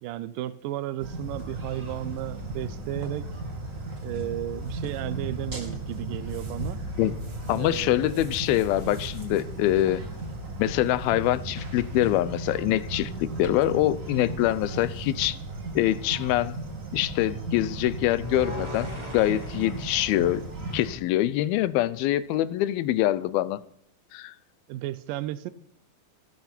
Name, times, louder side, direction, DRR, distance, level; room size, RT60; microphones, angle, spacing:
voice 1, 0.0-3.3 4.0-6.8 7.6-8.4 24.7-25.5, right 14 dB, 75° right, 2.1 m, -34 dB
sound 1, 1.0-20.9, right 2 dB, 25° right, 2.4 m, -36 dB
voice 2, 7.5-10.0 10.6-15.4 15.8-16.6 16.9-20.5 20.7-23.6 24.1-24.3, left 14 dB, 80° left, 2.5 m, -24 dB
sound 2, 18.2-21.4, left 1 dB, 10° right, 2.8 m, -39 dB
16.0 x 13.5 x 4.5 m
omnidirectional pair, 4.5 m